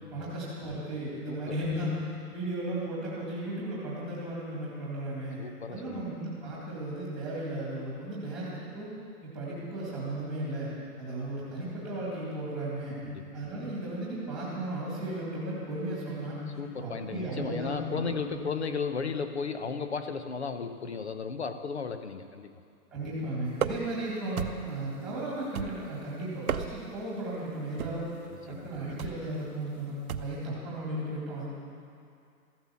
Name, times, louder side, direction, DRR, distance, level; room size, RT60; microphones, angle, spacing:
voice 1, 0.1-2.0 2.3-5.4 5.7-8.9 9.2-10.7 11.0-13.0 13.3-16.4 16.8-18.5 22.9-28.1 28.5-31.5, right 1 dB, ahead, -7 dB, 2.2 m, -35 dB
voice 2, 1.3-1.6 5.4-6.1 13.0-13.2 16.6-22.6 28.3-28.7, left 5 dB, 45° left, 9 dB, 0.8 m, -35 dB
sound 1, 23.6-24.0 24.4-24.8 25.6-26.0 26.3-27.0 27.8-28.1 29.0-29.3 30.1-30.4, right 7 dB, 65° right, 0.9 m, -34 dB
14.5 x 12.5 x 7.1 m, 2.5 s
hypercardioid pair, 180°, 47 cm